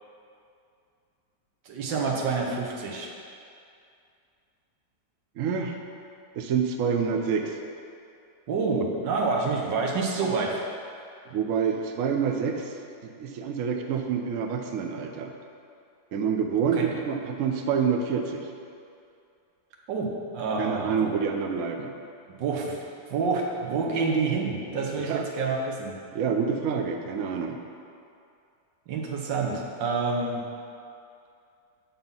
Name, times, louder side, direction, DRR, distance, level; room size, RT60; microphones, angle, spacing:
voice 1, 1.6-3.1 8.5-10.6 16.7-16.9 19.9-21.1 22.4-26.0 28.9-30.4, right 4 dB, 85° right, -1 dB, 1.7 m, -28 dB
voice 2, 5.4-5.8 6.3-7.6 11.3-12.7 13.0-15.3 16.1-18.5 20.6-21.9 25.0-25.2 26.1-27.6, right 6 dB, 65° right, 4 dB, 0.8 m, -27 dB
8.7 x 4.1 x 5.5 m, 2.5 s
omnidirectional pair, 1.9 m